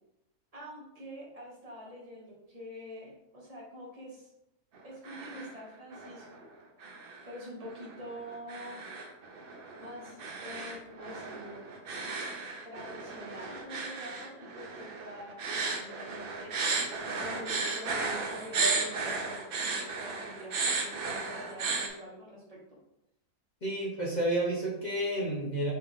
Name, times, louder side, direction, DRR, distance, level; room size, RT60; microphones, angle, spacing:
voice 1, 0.5-4.3 4.8-6.5 7.2-8.9 9.8-11.6 12.6-22.6, equal, 25° right, -3 dB, 1.1 m, -46 dB
sound 1, 4.8-5.6 5.9-6.4 6.8-21.9, right 4 dB, 60° right, 0.6 m, -35 dB
voice 2, 23.6-25.7, right 1 dB, 40° left, -4 dB, 0.7 m, -30 dB
4.3 x 3.5 x 3.6 m, 0.86 s
omnidirectional pair, 1.7 m